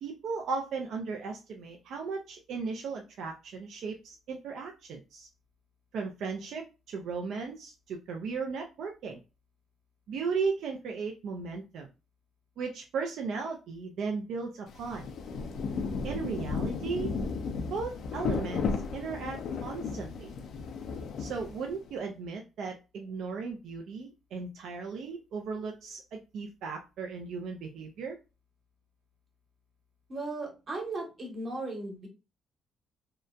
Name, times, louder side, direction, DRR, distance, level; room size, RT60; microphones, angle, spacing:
voice 1, 0.0-5.3 5.9-9.2 10.1-11.9 12.6-15.0 16.0-17.1 17.7-18.7 18.9-20.3 21.2-28.2, right 5 dB, 75° right, 2 dB, 0.4 m, -36 dB
Rain, 14.7-21.9, left 4 dB, 70° left, 0.4 m, -34 dB
voice 2, 30.1-32.1, right 2 dB, 45° right, 1 dB, 1.1 m, -36 dB
2.8 x 2.2 x 2.4 m, 0.29 s
cardioid pair, 90°, 0 cm